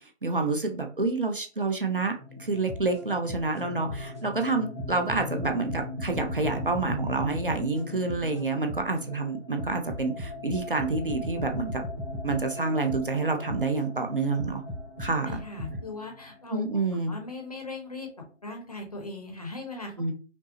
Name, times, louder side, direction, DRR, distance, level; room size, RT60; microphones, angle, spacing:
voice 1, 0.2-11.8 12.2-14.6 15.0-15.3 16.5-17.2 20.0-20.1, right 3 dB, 45° right, 5 dB, 0.6 m, -28 dB
sound 1, 1.8-17.4, left 2 dB, 80° right, 1.5 m, -41 dB
sound 2, 2.7-4.2 4.8-9.0 9.6-13.8 14.4-15.8, left 1 dB, 15° right, 0.8 m, -38 dB
voice 2, 15.1-16.6 16.9-18.1 18.4-20.0, left 3 dB, 30° left, 1 dB, 0.7 m, -39 dB
5.1 x 2.0 x 2.8 m, 0.36 s
figure-of-eight pair, 150°, 37 cm